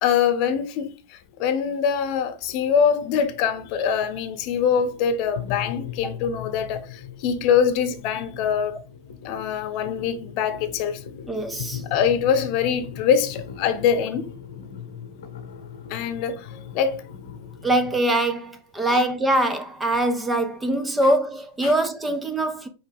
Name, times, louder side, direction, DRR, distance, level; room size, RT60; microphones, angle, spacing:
voice 1, 0.0-8.8 9.2-11.0 11.9-14.3 15.9-17.0 18.9-19.0 21.6-21.7, left 7 dB, 45° left, 0.7 m, -24 dB
sound 1, 1.2-18.0, left 8 dB, 90° left, 0.8 m, -39 dB
voice 2, 11.3-11.8 17.6-22.7, right 1 dB, 10° right, 0.4 m, -23 dB
4.6 x 3.3 x 3.4 m
supercardioid pair, 145°, 0 cm